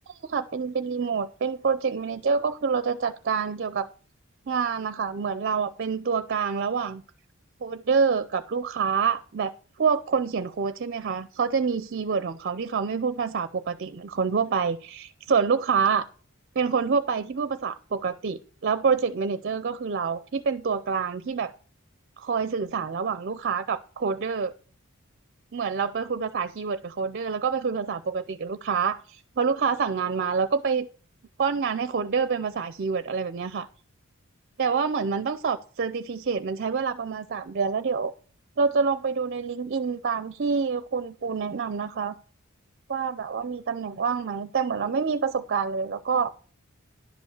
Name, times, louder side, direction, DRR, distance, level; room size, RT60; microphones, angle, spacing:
voice 1, 0.2-3.9 4.5-7.0 7.6-9.5 9.8-16.1 16.6-21.5 22.2-24.5 25.5-30.9 31.4-33.7 34.6-38.1 38.6-42.1 42.9-46.3, right 5 dB, 50° right, 14 dB, 0.5 m, -27 dB
11.0 x 5.3 x 6.5 m, 0.41 s
head